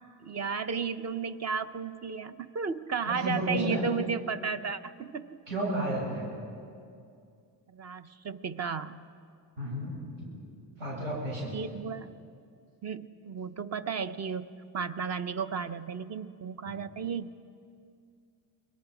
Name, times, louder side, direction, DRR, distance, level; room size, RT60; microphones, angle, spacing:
voice 1, 0.2-5.4 7.7-9.0 11.5-12.1 12.8-17.3, right 6 dB, 30° right, 12 dB, 0.7 m, -34 dB
voice 2, 3.0-3.9 5.5-6.3 9.6-10.3 10.8-11.5, right 1 dB, 70° right, -4 dB, 7.4 m, -32 dB
29.0 x 22.5 x 5.0 m, 2.4 s
cardioid pair, 130°, 49 cm